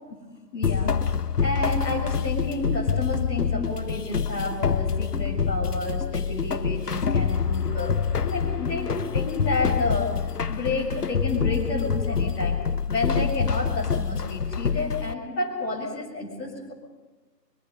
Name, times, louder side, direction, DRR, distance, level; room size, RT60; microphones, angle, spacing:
voice 1, 0.5-0.9 1.4-7.9 8.2-16.7, left 2 dB, 5° left, -9 dB, 2.6 m, -30 dB
sound 1, 0.6-15.1, left 6 dB, 65° left, 0.8 m, -26 dB
24.0 x 22.5 x 5.4 m, 1.2 s
figure-of-eight pair, 165°, 50 cm